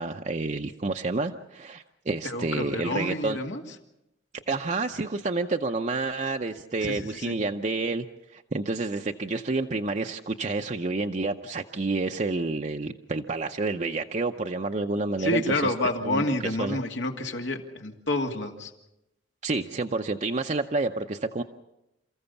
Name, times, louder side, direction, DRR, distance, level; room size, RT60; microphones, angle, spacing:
voice 1, 0.0-3.4 4.5-8.1 8.3-15.7 16.0-16.2 16.6-16.8 19.4-21.4, right 3 dB, 40° right, 4 dB, 0.7 m, -29 dB
voice 2, 2.2-3.6 6.8-7.4 15.2-18.7, left 1 dB, 85° left, 3 dB, 2.4 m, -29 dB
28.5 x 15.0 x 7.0 m, 0.90 s
head